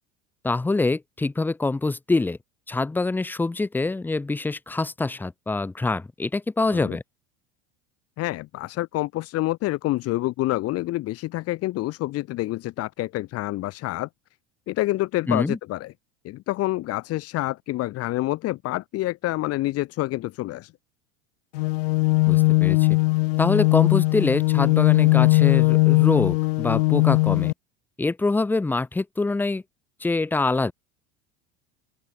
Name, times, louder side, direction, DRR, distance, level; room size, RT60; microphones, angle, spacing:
voice 1, 0.4-2.4 2.7-7.0 15.3-15.6 22.3-22.9 23.4-27.5 28.0-29.6 30.0-30.7, left 3 dB, 5° left, 0.5 m, -25 dB
voice 2, 8.2-14.1 14.7-15.9 16.2-20.7, left 17 dB, 50° left, 1.4 m, -27 dB
sound 1, 21.5-27.5, left 23 dB, 75° left, 0.6 m, -19 dB
open air
hypercardioid pair, 90°, 31 cm